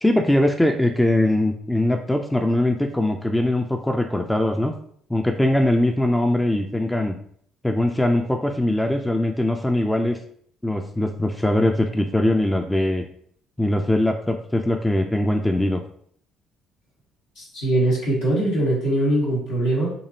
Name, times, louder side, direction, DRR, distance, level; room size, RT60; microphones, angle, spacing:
voice 1, 0.0-4.7 5.1-7.2 7.6-10.2 10.6-13.1 13.6-15.8, left 1 dB, 10° left, 5 dB, 0.4 m, -21 dB
voice 2, 17.4-19.9, right 1 dB, 70° left, -5 dB, 1.4 m, -22 dB
3.9 x 2.9 x 2.7 m, 0.62 s
figure-of-eight pair, 50°, 0 cm